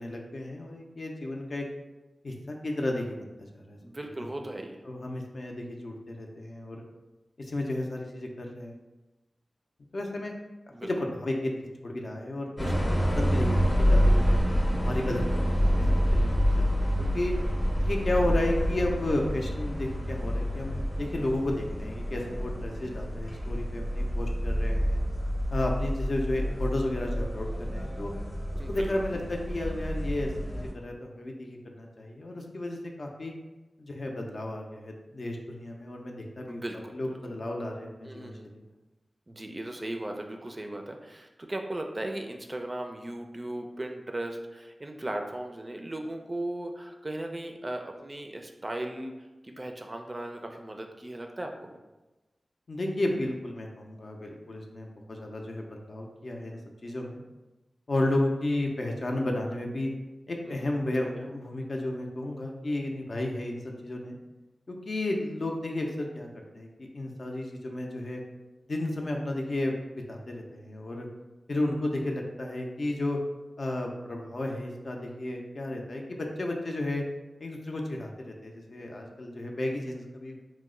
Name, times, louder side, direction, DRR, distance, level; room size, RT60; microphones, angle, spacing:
voice 1, 0.0-1.7 2.2-3.3 3.5-3.8 4.2-4.3 4.9-6.8 7.4-8.8 9.9-10.3 10.8-11.5 11.8-14.4 14.8-15.7 16.1-16.9 17.1-17.3 17.8-25.0 25.5-28.1 28.7-33.3 33.8-36.6 36.9-38.6 52.7-57.2 57.9-59.9 60.3-64.2 64.7-66.3 66.5-68.2 68.7-71.1 71.5-73.2 73.6-77.0 77.4-80.4, left 1 dB, 60° left, 1 dB, 0.5 m, -33 dB
voice 2, 3.8-4.8 10.7-10.9 28.6-28.9 36.5-37.2 38.0-38.5 39.3-49.1 49.4-51.8 60.4-60.7 61.1-61.3, right 1 dB, 30° right, 4 dB, 0.4 m, -37 dB
sound 1, 12.6-30.7, equal, 20° left, 0.7 m, -27 dB
2.9 x 2.0 x 3.7 m, 1.1 s
cardioid pair, 60°, 0 cm